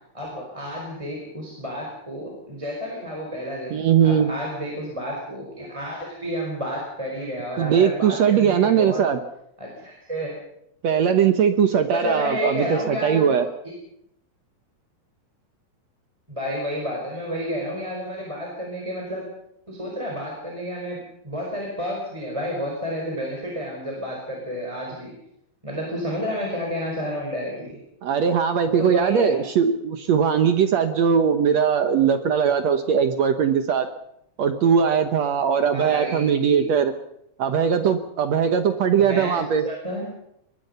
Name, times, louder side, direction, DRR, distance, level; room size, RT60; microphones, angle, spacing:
voice 1, 0.1-9.0 9.6-10.3 11.9-13.4 16.3-19.2 19.7-21.0 21.2-25.1 25.6-27.8 28.8-29.4 35.7-36.7 39.0-39.4 39.6-40.1, equal, 10° right, -2 dB, 4.8 m, -30 dB
voice 2, 3.7-4.3 7.6-9.2 10.8-13.5 28.0-33.9 34.4-36.9 37.4-39.6, right 7 dB, 65° right, 8 dB, 1.9 m, -20 dB
23.0 x 20.0 x 5.6 m, 0.76 s
omnidirectional pair, 4.1 m